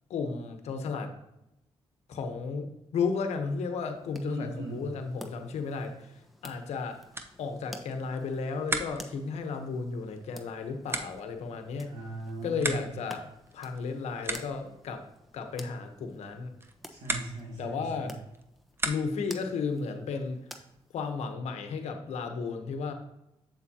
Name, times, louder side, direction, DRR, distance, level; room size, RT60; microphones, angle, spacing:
voice 1, 0.1-1.1 2.1-7.0 7.4-11.9 12.4-13.3 13.5-15.0 15.3-16.5 17.6-18.1 18.8-20.4 20.9-22.9, left 5 dB, 85° left, 6 dB, 1.0 m, -33 dB
sound 1, 3.9-21.3, left 1 dB, ahead, 1.1 m, -52 dB
voice 2, 4.3-4.9 11.8-12.9 16.9-18.1, right 2 dB, 85° right, -6 dB, 2.0 m, -39 dB
sound 2, 7.1-19.4, right 2 dB, 20° right, 0.9 m, -40 dB
7.6 x 7.3 x 2.8 m, 0.87 s
cardioid pair, 75°, 11 cm